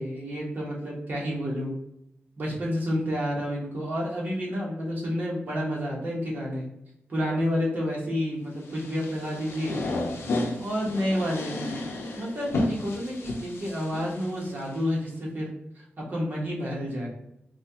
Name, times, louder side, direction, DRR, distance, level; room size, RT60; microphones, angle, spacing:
voice 1, 0.0-1.7 2.4-6.6 7.1-9.8 10.6-11.8 12.1-15.5 15.7-17.1, equal, 45° right, -4 dB, 1.1 m, -30 dB
sound 1, 8.7-14.8, left 2 dB, 80° left, 0.6 m, -32 dB
4.1 x 2.3 x 2.8 m, 0.80 s
wide cardioid pair, 160°, 4 cm